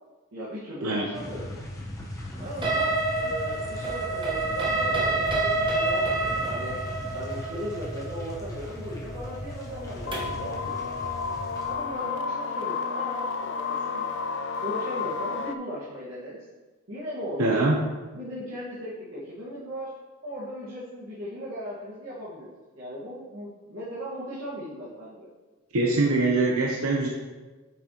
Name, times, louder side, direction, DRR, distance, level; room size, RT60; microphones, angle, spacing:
voice 1, 0.3-1.5 2.4-6.7 7.1-10.9 11.6-14.1 14.6-16.4 16.9-17.7 18.1-19.9 20.2-25.3, equal, 60° right, -9 dB, 1.7 m, -37 dB
sound 1, 1.1-11.7, equal, 15° left, 1.0 m, -38 dB
sound 2, 2.6-10.4, right 2 dB, 20° right, 1.1 m, -28 dB
sound 3, 9.7-15.6, left 5 dB, 55° left, 0.4 m, -31 dB
voice 2, 17.4-17.8 25.7-27.1, right 2 dB, 80° right, -1 dB, 0.8 m, -23 dB
8.5 x 6.0 x 3.0 m, 1.3 s
head